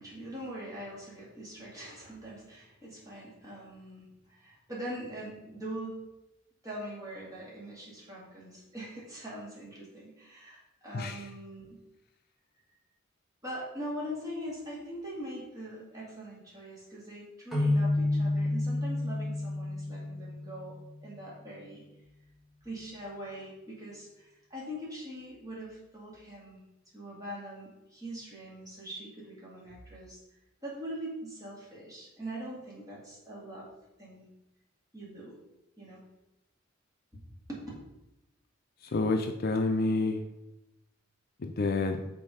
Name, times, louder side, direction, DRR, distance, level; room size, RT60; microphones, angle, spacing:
voice 1, 0.0-6.0 6.6-11.8 13.4-21.8 22.6-26.6 26.9-30.2 30.6-33.7 34.0-34.3 34.9-35.4 35.8-36.0 37.1-37.2 37.5-37.6, right 1 dB, 20° right, -6 dB, 2.4 m, -42 dB
sound 1, 17.5-21.0, left 2 dB, ahead, 1.8 m, -30 dB
voice 2, 38.9-40.2 41.4-42.0, left 3 dB, 50° left, 5 dB, 0.5 m, -28 dB
6.0 x 4.0 x 4.9 m, 0.94 s
head